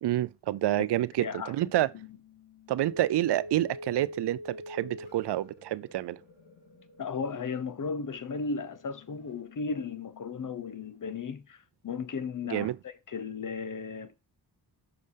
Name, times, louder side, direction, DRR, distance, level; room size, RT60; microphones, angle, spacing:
voice 1, 0.0-1.9 2.7-6.2 12.5-12.8, right 14 dB, 90° right, 0.5 m, -28 dB
voice 2, 1.2-1.5 1.9-2.1 7.0-14.1, left 5 dB, 50° left, 1.0 m, -35 dB
sound 1, 1.3-11.2, left 1 dB, 90° left, 2.9 m, -48 dB
6.6 x 4.8 x 5.6 m
cardioid pair, 55°, 39 cm